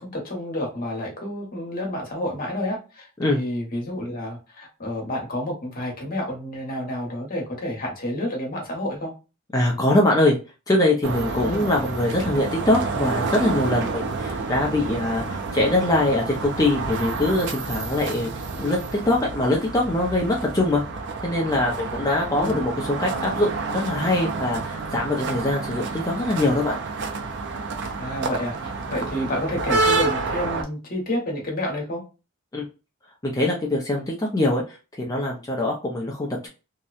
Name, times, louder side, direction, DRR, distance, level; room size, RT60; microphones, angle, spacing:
voice 1, 0.0-9.1 11.4-11.7 22.3-22.6 28.0-32.0, left 1 dB, 45° left, 0 dB, 1.0 m, -29 dB
voice 2, 9.5-10.3 10.7-18.3 18.6-20.8 21.2-26.8 32.5-32.7 33.2-36.5, left 1 dB, 15° left, -2 dB, 0.5 m, -23 dB
sound 1, 11.0-30.6, right 4 dB, 60° right, 0.5 m, -29 dB
2.8 x 2.1 x 2.4 m, 0.31 s
head